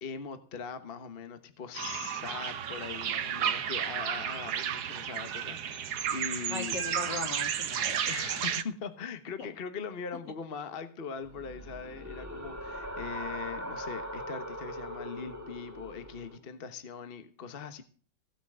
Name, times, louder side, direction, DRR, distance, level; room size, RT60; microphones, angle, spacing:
voice 1, 0.0-6.7 8.1-17.8, left 6 dB, 35° left, 1.2 m, -41 dB
sound 1, 1.7-8.6, right 9 dB, 65° right, 1.4 m, -33 dB
voice 2, 6.5-8.0 8.3-8.4 9.4-9.5, left 4 dB, 75° left, 2.8 m, -38 dB
sound 2, 11.2-16.4, equal, 10° right, 2.3 m, -40 dB
16.5 x 6.1 x 8.8 m
omnidirectional pair, 1.9 m